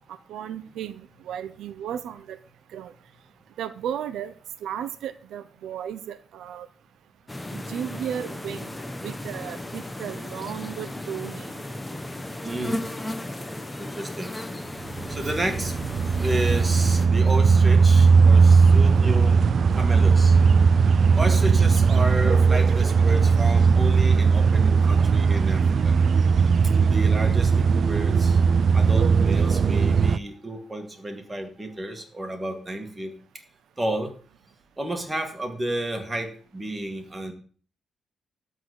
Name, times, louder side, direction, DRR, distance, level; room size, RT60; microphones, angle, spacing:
voice 1, 0.3-2.4 2.7-2.9 3.6-4.3 4.6-6.7 7.5-8.7 9.0-11.5 15.2-15.3, right 9 dB, 90° right, 12 dB, 0.7 m, -34 dB
sound 1, 7.3-17.1, left 1 dB, 10° left, 0.9 m, -35 dB
voice 2, 12.2-14.3 14.8-15.9 16.2-20.5 21.1-26.0 26.9-28.4 28.7-33.1 33.8-34.1 34.8-37.3, right 1 dB, 15° right, 3 dB, 2.0 m, -32 dB
sound 2, 14.9-30.2, right 5 dB, 45° right, 0.4 m, -18 dB
12.0 x 4.1 x 8.0 m, 0.43 s
cardioid pair, 155°, 0 cm